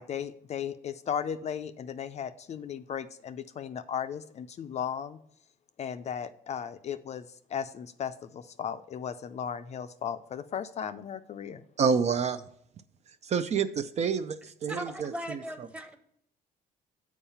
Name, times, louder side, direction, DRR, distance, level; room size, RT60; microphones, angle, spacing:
voice 1, 0.0-5.2 5.8-11.6, left 8 dB, 40° left, 10 dB, 0.4 m, -36 dB
voice 2, 11.8-12.4 13.2-15.1, right 6 dB, 40° right, 10 dB, 0.5 m, -28 dB
voice 3, 14.7-16.0, equal, 5° right, 7 dB, 1.0 m, -38 dB
7.2 x 4.6 x 5.6 m, 0.69 s
cardioid pair, 110°, 17 cm